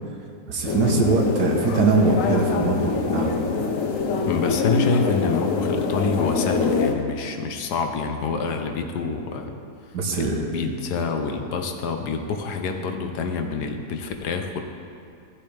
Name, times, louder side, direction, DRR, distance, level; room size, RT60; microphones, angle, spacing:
voice 1, 0.5-3.5 9.9-10.5, right 3 dB, 90° right, 0 dB, 1.7 m, -22 dB
sound 1, 0.6-6.9, left 4 dB, 60° left, 1.1 m, -24 dB
voice 2, 4.2-9.5 9.9-14.6, left 4 dB, 85° left, 5 dB, 1.4 m, -27 dB
15.5 x 7.4 x 3.4 m, 2.5 s
omnidirectional pair, 1.7 m